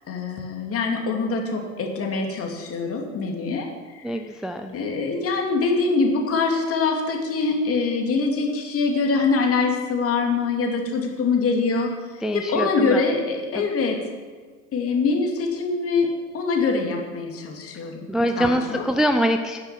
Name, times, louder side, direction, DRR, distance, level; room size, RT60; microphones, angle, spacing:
voice 1, 0.1-3.7 3.9-4.0 4.7-11.9 12.3-14.0 14.7-16.1 16.3-18.1 18.4-18.8, left 4 dB, 30° left, 2 dB, 2.6 m, -24 dB
voice 2, 4.0-4.7 12.2-13.0 13.5-13.7 18.1-19.6, equal, ahead, 6 dB, 0.5 m, -24 dB
12.0 x 9.7 x 6.2 m, 1.4 s
figure-of-eight pair, 75°, 42 cm